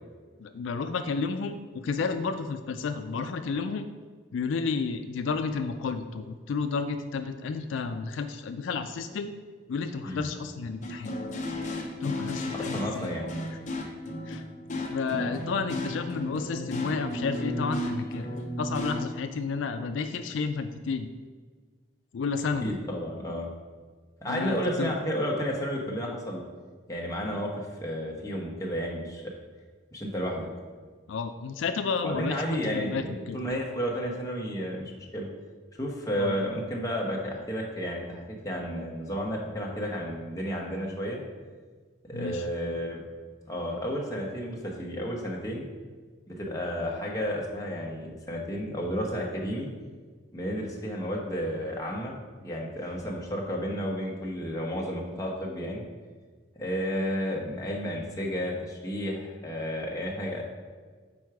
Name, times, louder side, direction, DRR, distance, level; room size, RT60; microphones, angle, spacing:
voice 1, 0.4-3.9 4.3-9.3 9.7-11.2 12.0-13.1 14.2-14.4 14.9-18.3 18.6-21.1 22.1-22.7 24.3-25.0 31.1-33.4 36.2-36.4 42.1-42.5, left 5 dB, 75° left, 8 dB, 0.4 m, -31 dB
sound 1, 10.8-19.0, left 1 dB, 40° left, 0.7 m, -34 dB
voice 2, 12.6-13.3 22.6-23.5 24.2-26.4 26.9-29.2 29.9-30.5 32.0-35.3 35.7-41.2 42.1-43.0 43.5-45.7 46.3-49.7 50.3-52.1 52.4-55.8 56.6-60.4, equal, 20° left, -2 dB, 1.0 m, -32 dB
6.2 x 4.4 x 4.7 m, 1.5 s
head